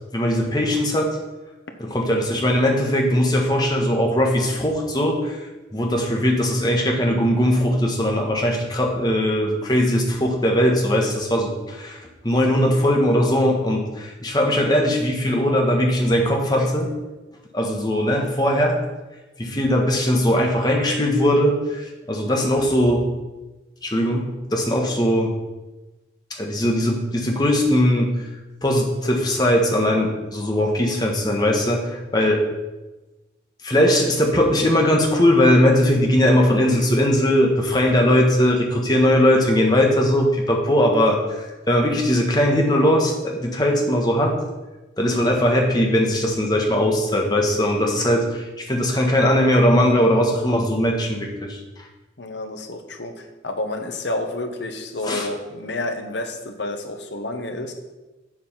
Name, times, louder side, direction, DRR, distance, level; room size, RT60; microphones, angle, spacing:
voice 1, 0.1-1.2 1.8-17.1 17.5-18.8 19.4-23.1 23.8-25.3 26.3-28.2 28.6-32.4 33.6-44.4 45.0-51.9 55.0-55.3, equal, 20° left, 0 dB, 1.4 m, -20 dB
voice 2, 52.2-57.7, left 2 dB, 70° left, 5 dB, 1.2 m, -30 dB
7.5 x 7.4 x 5.7 m, 1.1 s
head